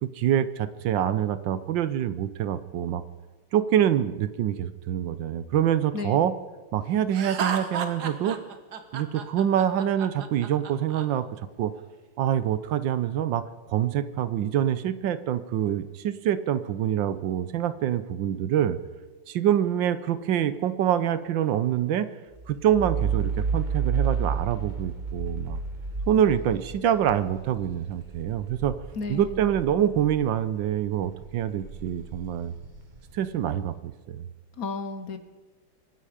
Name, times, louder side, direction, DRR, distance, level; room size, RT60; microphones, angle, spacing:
voice 1, 0.0-3.0 3.5-6.3 6.7-8.4 8.9-11.3 11.6-11.7 12.2-13.4 13.7-18.8 19.3-22.1 22.5-25.6 26.1-28.7 29.1-32.5 33.1-34.2, right 10 dB, 75° right, 14 dB, 1.4 m, -25 dB
voice 2, 5.9-6.3 28.9-29.5 34.6-35.2, left 3 dB, 55° left, 10 dB, 1.3 m, -33 dB
Laughter, 7.1-11.0, right 6 dB, 60° right, 1.7 m, -33 dB
sound 1, 22.3-30.6 31.0-33.6, right 6 dB, 30° right, 1.0 m, -32 dB
24.5 x 10.0 x 5.0 m, 1.3 s
omnidirectional pair, 2.1 m